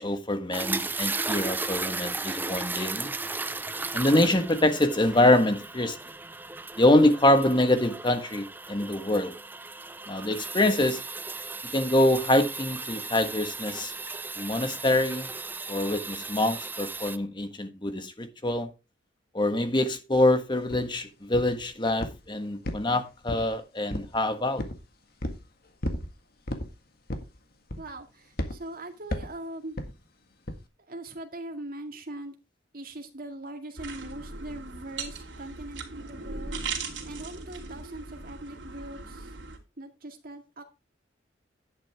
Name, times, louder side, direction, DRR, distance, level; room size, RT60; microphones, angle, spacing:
voice 1, 0.0-3.1 3.9-6.0 6.8-9.3 10.1-11.0 11.7-13.9 14.4-15.3 15.7-18.7 19.3-24.6, left 1 dB, 25° left, 1.4 m, -25 dB
sound 1, 0.5-17.2, right 3 dB, 10° right, 0.5 m, -36 dB
sound 2, 20.7-20.9 21.3-21.6 22.0-22.3 22.6-23.5 23.9-24.2 24.6-24.8 25.2-25.4 25.8-26.1 26.5-26.7 27.1-27.4 27.7-28.0 28.4-28.6 29.1-29.4 29.8-30.0 30.5-30.6, left 1 dB, 55° left, 1.8 m, -33 dB
voice 2, 27.8-29.8 30.9-32.4 32.7-36.6 37.0-39.3 39.8-40.6, right 1 dB, 50° right, 2.2 m, -41 dB
sound 3, 33.8-39.6, right 4 dB, 85° right, 2.9 m, -38 dB
11.0 x 8.8 x 3.5 m
head